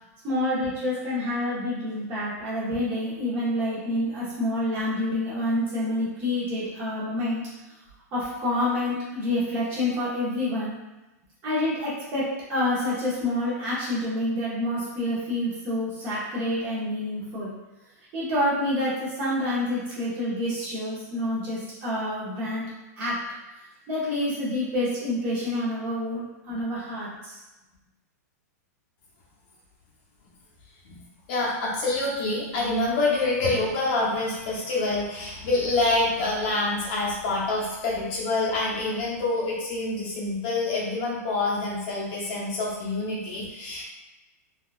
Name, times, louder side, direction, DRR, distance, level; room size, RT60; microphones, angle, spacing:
voice 1, 0.2-7.4 8.1-10.8 11.4-17.5 18.1-22.7 23.0-23.2 23.9-27.4, left 1 dB, 25° right, -8 dB, 0.8 m, -28 dB
voice 2, 31.3-43.8, left 2 dB, 35° left, -4 dB, 0.8 m, -26 dB
3.7 x 2.3 x 2.4 m, 1.0 s
supercardioid pair, 170°, 9 cm